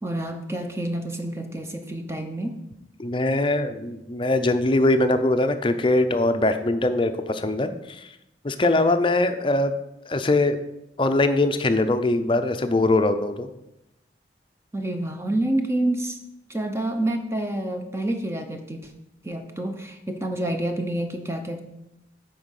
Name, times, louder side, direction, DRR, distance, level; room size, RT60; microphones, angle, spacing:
voice 1, 0.0-2.6 14.7-16.2 16.5-18.9 19.2-21.6, right 1 dB, 15° right, 5 dB, 0.7 m, -28 dB
voice 2, 3.0-8.1 8.4-9.7 10.1-10.6 11.0-13.5, left 2 dB, 30° left, 9 dB, 0.5 m, -22 dB
9.0 x 4.5 x 6.4 m, 0.88 s
head